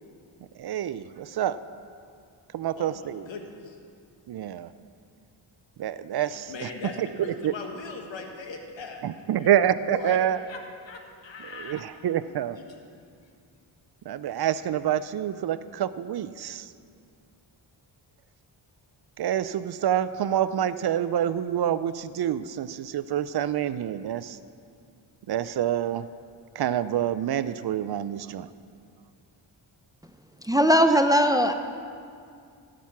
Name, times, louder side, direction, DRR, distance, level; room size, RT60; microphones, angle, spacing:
voice 1, 0.6-1.6 2.5-3.3 4.3-4.7 5.8-6.7 7.0-7.1 7.4-7.5 9.0-10.4 11.5-12.6 14.1-16.7 19.2-24.4 25.3-26.1 26.6-28.5, right 10 dB, 55° right, 14 dB, 0.5 m, -27 dB
voice 2, 2.8-3.8 6.3-9.5 9.9-10.2 10.5-11.8 12.3-12.6, left 4 dB, 70° left, 3 dB, 1.6 m, -40 dB
voice 3, 30.4-31.5, equal, 10° right, 8 dB, 0.5 m, -19 dB
16.5 x 6.1 x 5.9 m, 2.3 s
cardioid pair, 65°, 47 cm